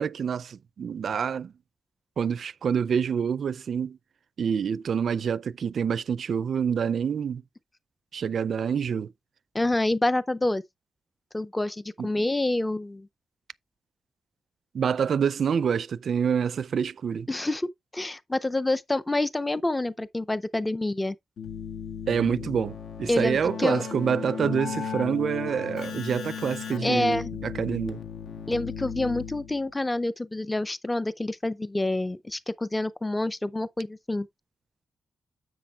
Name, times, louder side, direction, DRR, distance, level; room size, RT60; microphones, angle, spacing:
voice 1, 0.0-1.5 2.2-4.0 4.4-7.4 8.1-9.1 12.0-12.1 14.7-17.3 22.1-28.0, right 7 dB, 50° right, 0.4 m, -27 dB
voice 2, 9.5-10.6 11.3-13.1 17.3-21.2 23.1-23.8 26.8-27.3 28.5-34.3, left 2 dB, 10° left, 0.5 m, -27 dB
Keyboard (musical), 21.4-29.7, left 7 dB, 80° left, 1.8 m, -36 dB
10.0 x 7.8 x 2.3 m
wide cardioid pair, 175°, 0 cm